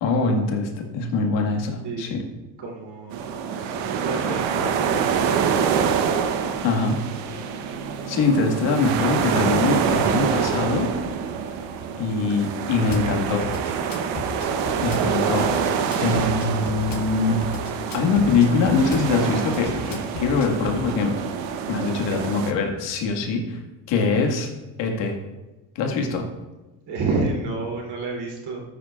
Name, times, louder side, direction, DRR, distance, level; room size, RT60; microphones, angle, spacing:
voice 1, 0.0-2.2 6.6-7.0 8.1-10.9 12.0-13.4 14.2-14.6 14.8-15.5 16.0-17.4 17.9-21.2 21.7-23.6 23.9-24.5 24.8-25.1 25.8-26.2, left 4 dB, 75° left, 1 dB, 1.8 m, -23 dB
voice 2, 1.8-2.1 2.6-5.5 26.9-28.6, right 3 dB, 60° right, -2 dB, 3.1 m, -30 dB
sound 1, 3.1-22.5, right 7 dB, 80° right, 1.0 m, -26 dB
Drum kit / Bass drum, 12.9-13.1 13.4-15.1 15.4-17.1 17.4-19.1 19.5-20.8, left 4 dB, 50° left, 1.3 m, -35 dB
14.0 x 8.9 x 2.4 m, 1.1 s
cardioid pair, 120°, 43 cm